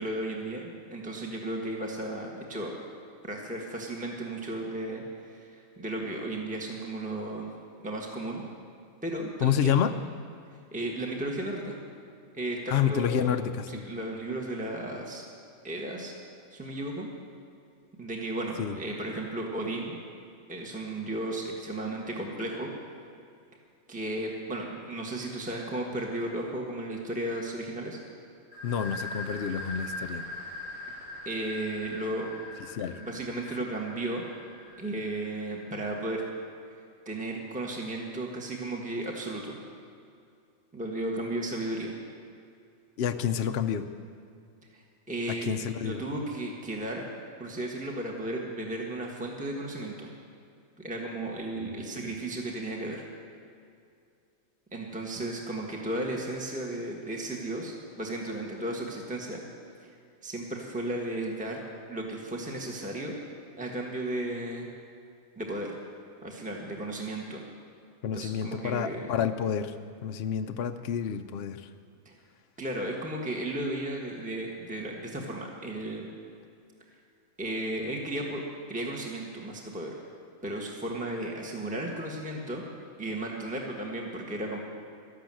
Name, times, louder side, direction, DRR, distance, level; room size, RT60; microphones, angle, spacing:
voice 1, 0.0-2.8 3.2-7.5 7.8-8.5 9.0-9.9 10.7-11.7 12.3-13.4 13.7-15.3 15.6-16.1 16.5-17.1 18.0-20.0 20.5-22.7 23.9-28.0 30.9-31.0 31.2-32.4 32.9-34.2 34.8-36.2 37.0-39.6 40.7-41.9 44.7-47.1 47.4-50.1 50.8-53.0 54.7-59.4 59.8-59.9 60.2-61.6 61.9-63.2 63.6-64.7 65.4-65.8 66.2-67.4 68.1-69.1 72.0-72.2 72.6-76.1 77.4-78.4 78.7-80.0 80.4-82.6 83.0-84.6, right 1 dB, 5° right, 0 dB, 1.4 m, -34 dB
voice 2, 9.4-9.9 12.7-13.8 18.6-18.8 28.6-30.3 32.7-33.0 43.0-43.9 45.3-46.0 51.6-52.1 68.0-69.7 70.0-71.7, left 8 dB, 65° left, 7 dB, 0.6 m, -29 dB
sound 1, 28.5-36.0, left 1 dB, 80° right, 3.9 m, -42 dB
13.0 x 11.5 x 7.6 m, 2.4 s
omnidirectional pair, 1.5 m